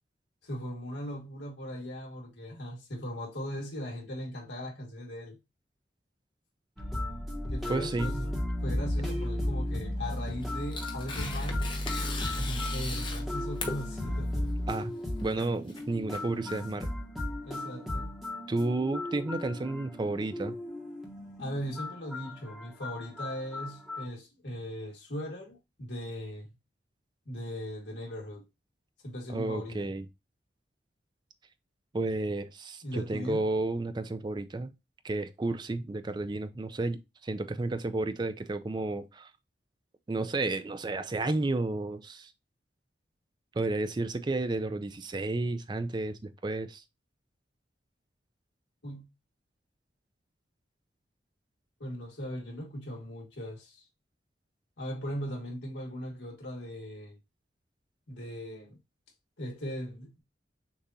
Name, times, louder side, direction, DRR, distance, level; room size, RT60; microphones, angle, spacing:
voice 1, 0.4-5.4 7.5-8.3 8.6-11.7 12.4-14.6 17.4-18.1 21.4-26.5 27.3-28.4 29.0-29.9 32.8-33.5 48.8-49.1 51.8-53.8 54.8-57.2 58.1-58.8 59.4-60.2, equal, 75° left, 1.9 m, -39 dB
sound 1, 6.8-24.1, left 1 dB, ahead, 1.0 m, -35 dB
voice 2, 7.7-8.1 14.7-14.9 15.2-16.9 18.5-20.5 29.3-30.0 31.9-34.7 35.0-39.3 40.1-42.3 43.5-46.8, right 2 dB, 25° right, 0.4 m, -32 dB
Tearing, 10.1-16.8, left 3 dB, 25° left, 0.9 m, -40 dB
6.6 x 2.5 x 2.7 m
head